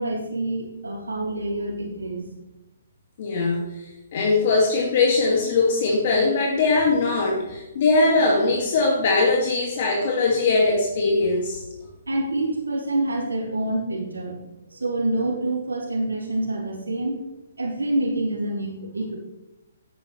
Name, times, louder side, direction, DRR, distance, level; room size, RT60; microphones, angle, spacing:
voice 1, 0.0-2.3 12.1-14.4 14.7-17.2 17.6-19.1, right 1 dB, 85° right, -2 dB, 3.5 m, -27 dB
voice 2, 3.2-3.6 4.1-11.6, left 3 dB, 50° left, -1 dB, 2.1 m, -21 dB
10.5 x 9.8 x 3.2 m, 0.99 s
figure-of-eight pair, 130°, 0 cm